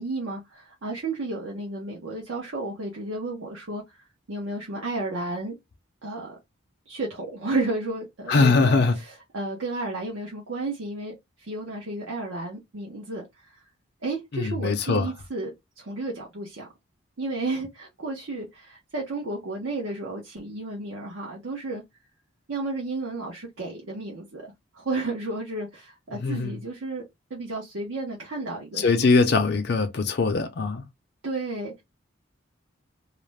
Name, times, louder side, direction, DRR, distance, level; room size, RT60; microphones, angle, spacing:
voice 1, 0.0-5.5 6.0-6.4 6.9-13.6 14.0-16.7 17.2-21.8 22.5-24.5 24.7-27.0 27.3-29.1 31.2-31.8, right 2 dB, 85° right, 0.7 m, -32 dB
voice 2, 8.3-9.0 14.3-15.1 26.2-26.6 28.8-30.8, left 4 dB, 55° left, 0.5 m, -21 dB
2.4 x 2.1 x 3.1 m
head